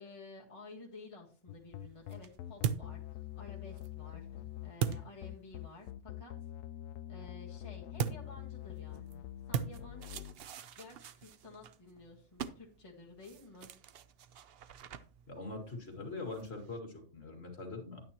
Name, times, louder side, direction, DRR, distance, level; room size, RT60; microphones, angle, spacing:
voice 1, 0.0-4.3 4.6-6.3 7.1-10.2 10.8-13.7, left 3 dB, 20° left, -2 dB, 1.5 m, -53 dB
sound 1, 1.5-10.3, left 12 dB, 70° left, 0.9 m, -45 dB
sound 2, 1.5-5.9 8.0-16.8, right 8 dB, 60° right, 0.6 m, -42 dB
voice 2, 15.3-18.0, left 3 dB, 45° left, 2 dB, 2.3 m, -43 dB
10.5 x 9.2 x 2.9 m, 0.39 s
omnidirectional pair, 1.5 m